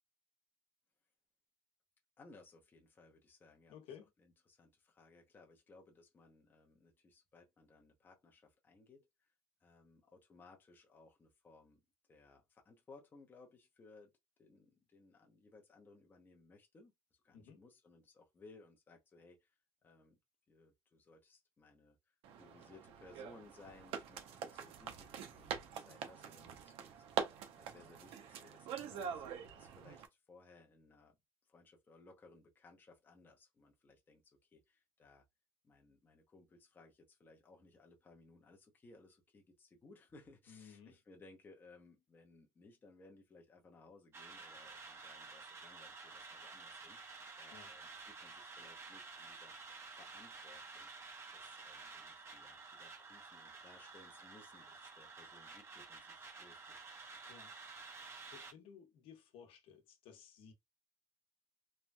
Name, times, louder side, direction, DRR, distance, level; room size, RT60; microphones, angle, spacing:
voice 1, 2.2-3.7 4.2-9.3 9.6-11.8 12.1-20.2 20.5-31.2 31.5-35.2 35.6-49.5 49.9-50.9 51.3-56.8, left 3 dB, 20° left, 0.6 m, -62 dB
voice 2, 3.7-4.1 17.3-17.6 40.5-41.0 47.5-47.7 57.3-57.6 57.8-58.0 58.3-60.5, left 7 dB, 70° left, 0.9 m, -57 dB
sound 1, 22.2-30.1, right 7 dB, 75° right, 0.6 m, -44 dB
sound 2, 44.1-58.5, right 4 dB, 25° right, 0.6 m, -52 dB
3.2 x 2.2 x 2.6 m
cardioid pair, 150°, 10 cm